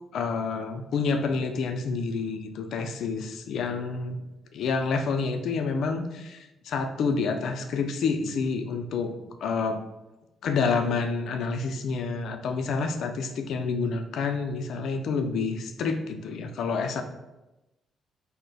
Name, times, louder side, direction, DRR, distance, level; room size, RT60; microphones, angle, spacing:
voice 1, 0.1-4.2 4.5-9.1 9.4-9.8 10.4-17.0, left 4 dB, 70° left, 6 dB, 0.3 m, -28 dB
2.9 x 2.0 x 3.9 m, 1.0 s
cardioid pair, 90°, 0 cm